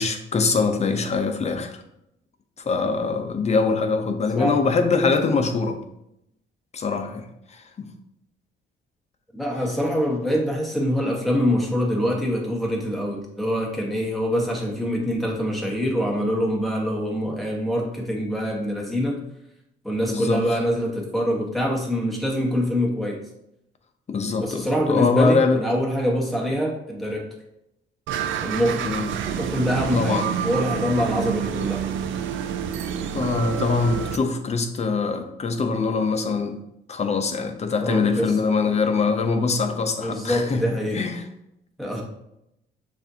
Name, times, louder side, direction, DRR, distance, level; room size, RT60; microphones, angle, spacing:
voice 1, 0.0-1.8 2.6-5.8 6.7-7.9 20.1-20.4 24.1-25.6 28.8-29.1 29.9-30.3 33.1-36.6 36.9-40.6 40.9-41.2, left 4 dB, 35° left, 6 dB, 0.6 m, -23 dB
voice 2, 9.3-19.2 19.8-23.2 24.4-27.3 28.4-28.9 29.4-31.8 37.8-38.3 40.0-41.0 41.8-42.0, equal, ahead, -2 dB, 1.3 m, -24 dB
sound 1, 28.1-34.2, right 8 dB, 75° right, 0.4 m, -28 dB
6.7 x 2.6 x 2.7 m, 0.81 s
cardioid pair, 90°, 20 cm